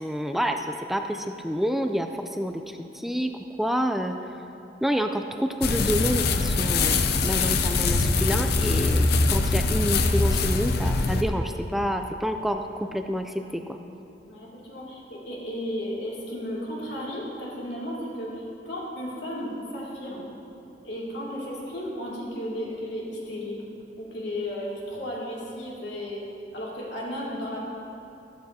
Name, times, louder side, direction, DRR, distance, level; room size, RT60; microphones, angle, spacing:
voice 1, 0.0-3.3 3.6-4.2 4.8-13.8, equal, ahead, 5 dB, 0.3 m, -28 dB
sound 1, 5.6-11.2, left 3 dB, 60° left, 0.6 m, -23 dB
voice 2, 14.3-20.3 20.8-23.6 24.0-26.2 26.5-27.6, equal, 80° left, -5 dB, 2.6 m, -34 dB
13.5 x 12.0 x 2.8 m, 2.9 s
head